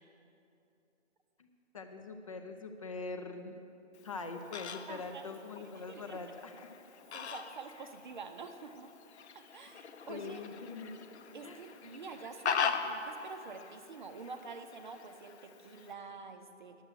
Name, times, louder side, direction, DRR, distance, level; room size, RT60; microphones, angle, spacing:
voice 1, 1.7-3.5 4.0-6.7 10.1-11.0 11.4-11.6, left 4 dB, 30° left, 6 dB, 0.5 m, -43 dB
Fowl, 3.9-15.9, left 6 dB, 60° left, 0.8 m, -41 dB
voice 2, 4.9-5.4 5.7-6.2 7.1-8.9 9.3-10.4 11.3-16.8, right 4 dB, 40° right, 7 dB, 0.6 m, -47 dB
10.5 x 7.8 x 7.8 m, 2.8 s
hypercardioid pair, 170°, 37 cm